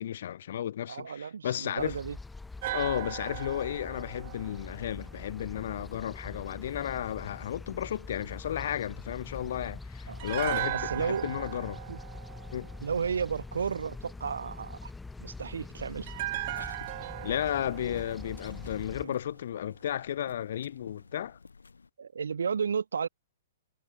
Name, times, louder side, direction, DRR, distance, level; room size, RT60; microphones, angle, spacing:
voice 1, 0.0-2.0 2.7-11.8 12.5-12.7 17.2-21.4, left 10 dB, 60° left, 0.4 m, -33 dB
voice 2, 0.9-2.2 10.1-10.3 10.7-11.3 11.9-12.0 12.8-14.9 15.2-16.1 19.0-19.1 22.0-23.1, right 6 dB, 75° right, 0.5 m, -33 dB
sound 1, 1.8-19.1, left 3 dB, 5° left, 1.8 m, -44 dB
sound 2, 2.6-5.8 10.2-13.4 16.1-19.3 19.5-19.7, right 17 dB, 50° right, 2.0 m, -38 dB
sound 3, 15.9-21.9, left 4 dB, 85° left, 4.4 m, -53 dB
hypercardioid pair, 120°, 0 cm